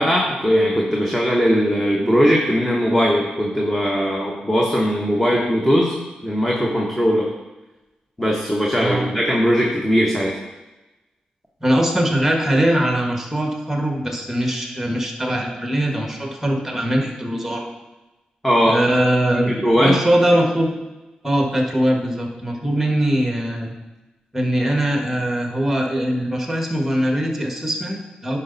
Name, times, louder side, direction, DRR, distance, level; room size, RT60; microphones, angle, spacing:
voice 1, 0.0-5.9 6.2-7.3 8.2-10.4 18.4-18.8 19.6-20.0, equal, 10° left, -2 dB, 1.2 m, -19 dB
voice 2, 11.6-17.7 18.6-20.7 21.2-23.7 24.3-28.4, right 1 dB, 5° right, 1 dB, 1.5 m, -21 dB
9.9 x 5.4 x 4.0 m, 1.1 s
cardioid pair, 95°, 3 cm